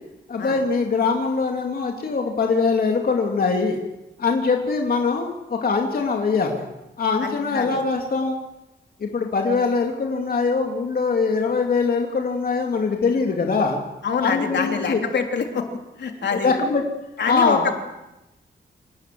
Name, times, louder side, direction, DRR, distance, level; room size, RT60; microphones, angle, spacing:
voice 1, 0.3-3.8 4.2-6.6 7.0-8.4 9.0-13.8 14.2-15.0 16.3-16.8 17.2-17.7, left 4 dB, 50° left, 2 dB, 2.8 m, -22 dB
voice 2, 7.2-7.8 14.0-15.6 16.0-16.5 17.2-17.7, left 5 dB, 65° left, 4 dB, 3.3 m, -25 dB
27.5 x 19.0 x 7.8 m, 0.97 s
wide cardioid pair, 165°, 19 cm